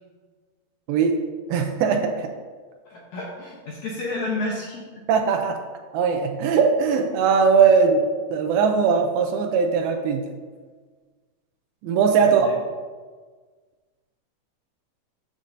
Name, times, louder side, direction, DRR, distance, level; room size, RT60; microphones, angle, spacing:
voice 1, 1.5-2.3 5.1-5.6 5.9-8.0 8.3-10.2 11.8-12.5, right 6 dB, 90° right, 4 dB, 2.5 m, -20 dB
voice 2, 2.9-5.0 12.2-12.6, left 2 dB, 65° left, -3 dB, 2.0 m, -31 dB
12.5 x 7.0 x 2.6 m, 1.5 s
omnidirectional pair, 4.3 m